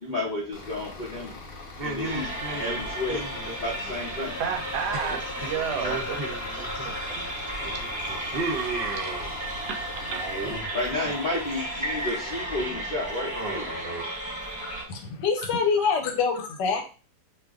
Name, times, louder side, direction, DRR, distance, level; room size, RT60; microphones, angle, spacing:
voice 1, 0.0-1.4 1.8-4.4 10.7-13.9, left 2 dB, 50° left, -7 dB, 0.5 m, -32 dB
Bus / Idling, 0.5-10.5, left 3 dB, 65° left, 1.0 m, -43 dB
sound 1, 1.8-4.2 4.5-4.6 4.9-7.3 7.6-9.6 10.0-10.7 11.0-11.5 11.9-12.4 13.3-14.0, right 3 dB, 55° right, 0.6 m, -35 dB
sound 2, 2.0-14.8, right 1 dB, 25° right, 1.3 m, -34 dB
voice 2, 4.4-6.7 9.6-10.2 15.8-15.9, right 6 dB, 70° right, 4 dB, 1.1 m, -32 dB
voice 3, 14.9-16.8, left 5 dB, 80° left, 4 dB, 1.3 m, -25 dB
2.8 x 2.4 x 3.5 m, 0.35 s
omnidirectional pair, 1.9 m